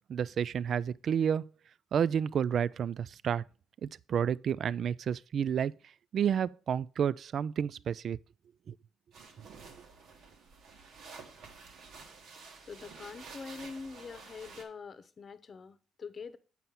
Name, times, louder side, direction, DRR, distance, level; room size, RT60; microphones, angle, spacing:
voice 1, 0.1-1.5 1.9-3.4 3.8-5.7 6.1-8.2 8.7-8.8, right 8 dB, 60° right, 0.3 m, -30 dB
sound 1, 9.1-14.6, right 4 dB, 80° right, 1.7 m, -51 dB
voice 2, 12.7-16.4, left 5 dB, 45° left, 0.8 m, -44 dB
7.5 x 5.6 x 5.6 m
cardioid pair, 90°, 0 cm